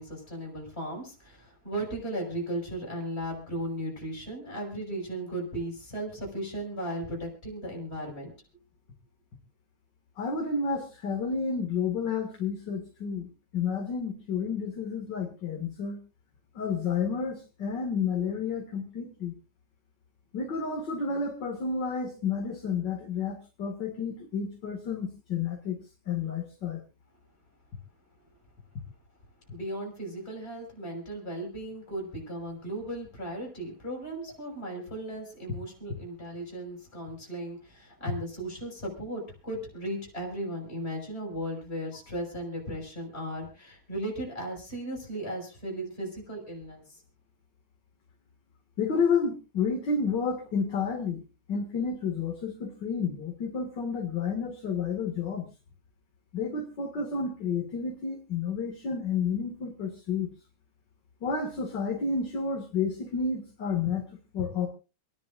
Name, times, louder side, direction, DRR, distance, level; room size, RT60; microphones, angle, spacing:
voice 1, 0.0-8.3 29.5-47.0, right 1 dB, 20° left, 0 dB, 5.9 m, -36 dB
voice 2, 10.2-16.0 16.5-19.3 20.3-25.8 26.1-26.8 48.8-51.2 51.5-55.5 56.3-60.3 61.2-64.7, left 5 dB, 40° left, 0 dB, 2.2 m, -30 dB
28.0 x 10.5 x 2.5 m, 0.31 s
omnidirectional pair, 3.3 m